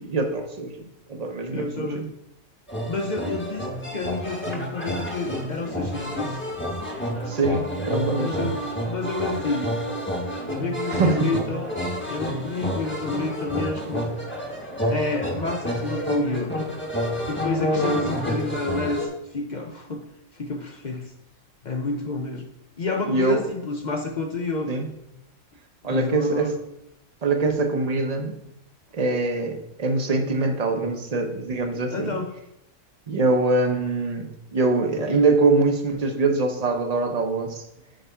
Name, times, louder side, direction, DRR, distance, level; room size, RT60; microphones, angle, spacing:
voice 1, 0.0-2.1 7.3-8.6 10.9-11.4 23.1-23.4 24.7-24.9 25.8-26.5 27.2-28.4 28.9-32.2 33.1-37.7, right 3 dB, 35° right, 5 dB, 0.7 m, -23 dB
voice 2, 1.5-2.1 2.9-3.7 3.9-6.5 8.2-9.7 10.6-11.7 12.1-14.1 14.9-16.5 17.3-20.0 20.3-21.1 21.6-22.5 22.8-24.7 25.8-26.5 31.9-32.4, left 3 dB, 55° left, 4 dB, 0.5 m, -29 dB
sound 1, 2.7-19.1, equal, 10° left, 1.0 m, -29 dB
8.9 x 3.3 x 5.6 m, 0.84 s
omnidirectional pair, 1.5 m